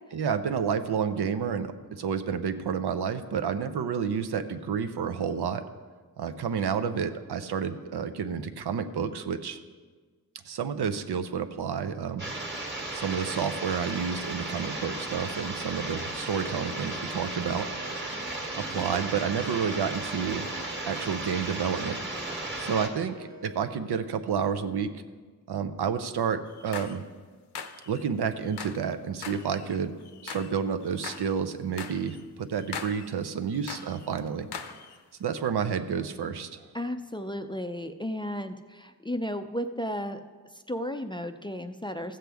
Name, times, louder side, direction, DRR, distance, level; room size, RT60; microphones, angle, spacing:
voice 1, 0.1-5.6 6.2-9.6 10.5-12.2 12.9-17.7 18.5-20.5 20.9-22.0 22.6-24.9 25.5-27.0 27.9-29.9 30.2-34.5 35.2-36.7, right 7 dB, 80° right, 10 dB, 0.7 m, -30 dB
No transmission, 12.2-22.9, right 2 dB, 30° right, 1.5 m, -35 dB
Wind instrument woodwind instrument, 16.4-24.0, right 1 dB, 45° right, 1.3 m, -47 dB
sound 1, 26.5-27.0 27.5-28.0 28.4-28.9 29.2-30.5 30.8-31.3 31.8-32.2 32.6-33.1 33.5-34.1 34.5-35.0, left 6 dB, 85° left, 0.7 m, -41 dB
voice 2, 36.7-40.2 40.5-42.2, equal, 15° left, 7 dB, 0.3 m, -34 dB
15.0 x 7.7 x 3.4 m, 1.4 s
wide cardioid pair, 110°, 39 cm